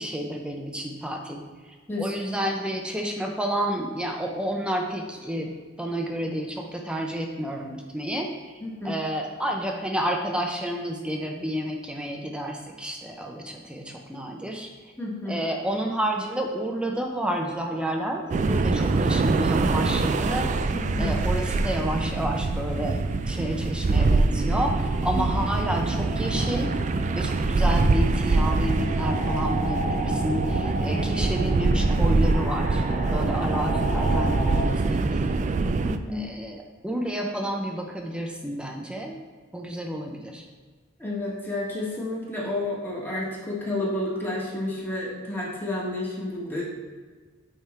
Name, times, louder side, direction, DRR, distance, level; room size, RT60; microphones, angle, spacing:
voice 1, 0.0-1.4 2.0-8.5 8.8-14.7 15.3-20.5 21.0-26.7 27.2-32.8 33.1-35.4 36.1-39.2 39.5-40.5, right 1 dB, 5° right, 1 dB, 0.6 m, -30 dB
voice 2, 1.9-2.4 8.6-9.0 15.0-15.4 20.7-21.2 25.1-25.2 30.9-31.1 31.8-32.2 35.8-36.2 41.0-46.6, left 1 dB, 10° left, -5 dB, 1.5 m, -31 dB
sound 1, 18.3-36.0, right 3 dB, 40° right, 0.3 m, -24 dB
sound 2, 22.1-34.7, equal, 60° left, 2.2 m, -36 dB
9.1 x 3.5 x 4.3 m, 1.5 s
head